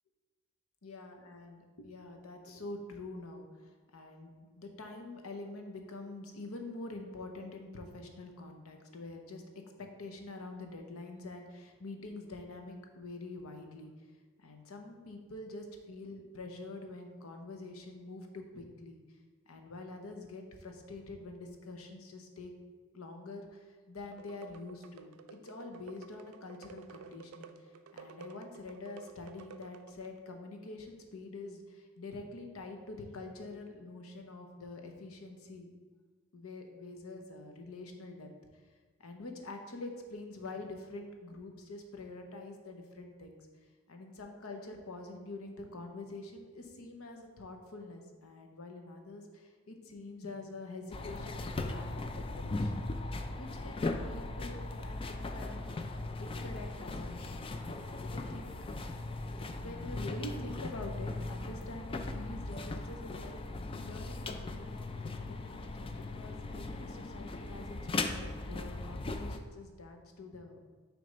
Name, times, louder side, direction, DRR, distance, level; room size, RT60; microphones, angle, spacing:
voice 1, 0.8-13.9 14.4-19.0 19.5-22.5 22.9-35.7 36.3-38.3 39.0-43.5 43.9-52.9 53.3-55.6 56.2-58.9 59.5-63.4 63.8-70.7, left 2 dB, 80° left, 4 dB, 0.9 m, -46 dB
sound 1, 24.1-30.2, right 5 dB, 75° right, 0.4 m, -52 dB
sound 2, 50.9-69.4, left 2 dB, 25° left, 0.3 m, -38 dB
6.4 x 3.4 x 5.1 m, 1.4 s
head